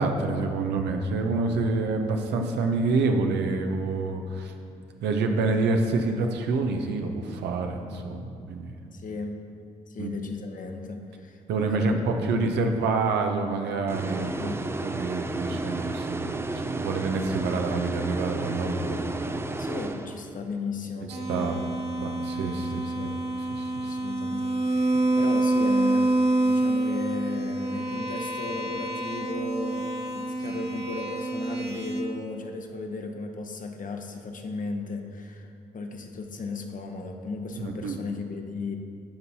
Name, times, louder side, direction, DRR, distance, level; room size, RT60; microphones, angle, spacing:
voice 1, 0.0-4.5 5.0-8.7 10.0-10.1 11.5-14.5 14.8-19.4 21.3-21.6 22.0-22.9 23.6-23.9 37.6-38.0, right 3 dB, 70° right, 4 dB, 0.8 m, -27 dB
voice 2, 8.9-9.4 9.9-11.9 12.3-12.6 14.4-14.6 19.6-21.7 22.6-23.2 23.8-26.1 26.4-35.5 35.7-38.8, left 3 dB, 45° left, 4 dB, 1.0 m, -35 dB
sound 1, 13.9-20.6, right 2 dB, 15° right, 0.5 m, -32 dB
sound 2, 21.1-32.0, right 2 dB, 35° right, 1.6 m, -27 dB
14.5 x 5.4 x 2.8 m, 2.5 s
hypercardioid pair, 45°, 18 cm